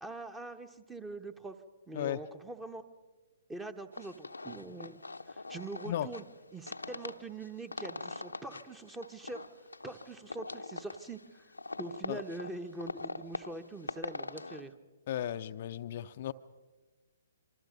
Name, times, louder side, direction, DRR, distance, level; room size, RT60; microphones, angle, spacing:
voice 1, 0.0-1.5 1.9-2.9 3.5-6.2 6.5-9.4 9.8-11.4 11.8-14.7, right 2 dB, 10° right, 10 dB, 1.2 m, -43 dB
sound 1, 3.9-14.6, left 3 dB, 85° left, 0.9 m, -43 dB
voice 2, 15.1-16.3, left 11 dB, 45° left, 9 dB, 0.6 m, -35 dB
26.5 x 25.0 x 5.3 m, 1.3 s
figure-of-eight pair, 125°, 0 cm